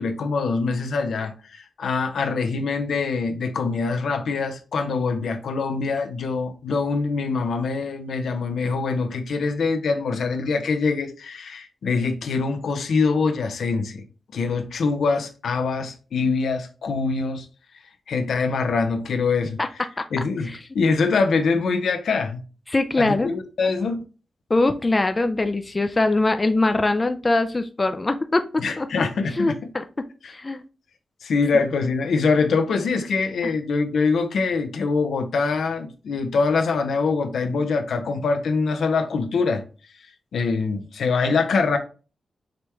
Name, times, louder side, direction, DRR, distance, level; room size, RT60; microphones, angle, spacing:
voice 1, 0.0-14.0 14.3-17.5 18.1-19.6 20.1-22.4 23.0-24.0 28.6-29.7 30.2-30.3 31.2-39.6 40.3-41.8, left 4 dB, 80° left, 0.7 m, -24 dB
voice 2, 22.7-23.3 24.5-28.9 29.4-29.8 30.2-30.6, left 2 dB, 30° left, 0.5 m, -22 dB
5.0 x 3.0 x 3.4 m
cardioid pair, 60°, 0 cm